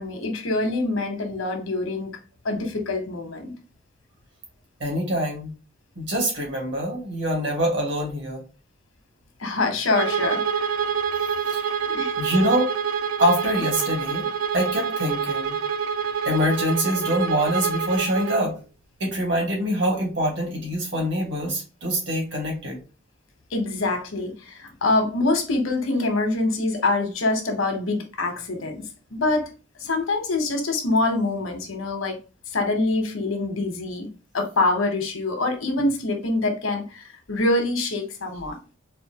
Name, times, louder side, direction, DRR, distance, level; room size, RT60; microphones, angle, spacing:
voice 1, 0.0-2.1 2.4-3.5 9.4-10.8 11.9-12.1 23.5-28.8 29.1-29.5 29.8-32.2 32.5-34.1 34.3-38.6, left 2 dB, 90° left, 1.0 m, -25 dB
voice 2, 4.8-5.5 6.0-8.4 11.5-11.8 12.2-12.7 13.2-14.3 14.5-15.6 16.3-18.5 19.0-22.8, equal, 65° right, 1.8 m, -24 dB
Bowed string instrument, 9.9-18.5, right 6 dB, 90° right, 0.4 m, -26 dB
4.3 x 2.6 x 2.9 m
head